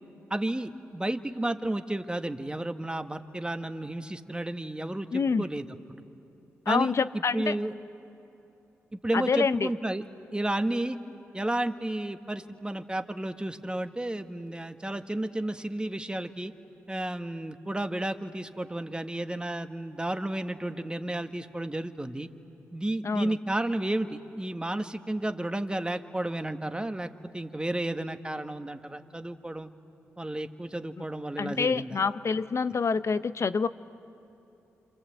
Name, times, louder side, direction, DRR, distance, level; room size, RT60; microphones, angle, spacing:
voice 1, 0.3-6.0 6.7-7.7 8.9-10.0 10.3-11.0 11.3-16.5 16.9-22.3 22.7-29.7 30.2-32.0, right 1 dB, 15° right, 8 dB, 1.4 m, -32 dB
voice 2, 5.1-5.4 6.7-7.6 9.1-9.7 23.0-23.3 31.4-33.7, left 5 dB, 55° left, 14 dB, 0.7 m, -27 dB
27.5 x 26.5 x 7.9 m, 2.9 s
supercardioid pair, 40°, 6 cm